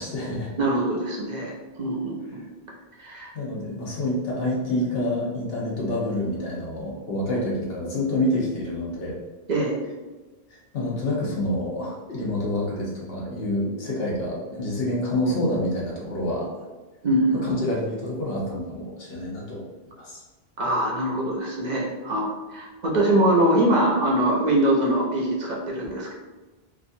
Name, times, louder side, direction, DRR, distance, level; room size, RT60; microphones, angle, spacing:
voice 1, 0.0-0.5 3.3-9.2 10.5-16.6 17.5-19.6 20.0-20.2, left 1 dB, 65° left, -4 dB, 1.0 m, -27 dB
voice 2, 0.6-2.4 3.0-3.3 9.5-9.8 17.0-17.6 20.6-26.1, right 1 dB, 55° right, -3 dB, 0.5 m, -23 dB
2.9 x 2.4 x 2.6 m, 1.2 s
omnidirectional pair, 1.1 m